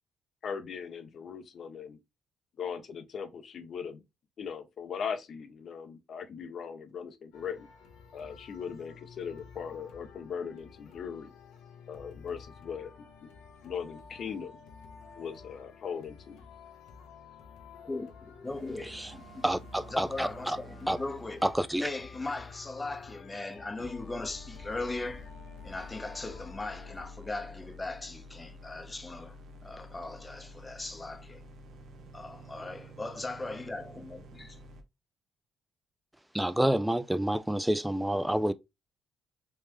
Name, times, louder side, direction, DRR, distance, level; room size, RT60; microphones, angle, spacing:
voice 1, 0.4-2.0 2.6-4.0 4.4-7.7 8.1-11.3 11.9-13.3 13.6-14.6 15.1-16.4, left 7 dB, 60° left, 0.7 m, -39 dB
sound 1, 7.3-27.0, left 5 dB, 90° left, 0.9 m, -52 dB
voice 2, 17.8-19.4 19.9-21.5 21.8-25.3 25.6-29.4 29.6-31.4 32.1-34.6, left 2 dB, 20° left, 0.7 m, -39 dB
sound 2, 18.4-23.4 23.8-34.8, left 1 dB, 65° right, 0.7 m, -50 dB
voice 3, 19.4-20.6 20.9-21.0 21.4-21.9 36.3-38.5, right 1 dB, 5° right, 0.3 m, -28 dB
3.4 x 3.2 x 3.0 m
cardioid pair, 90°, 0 cm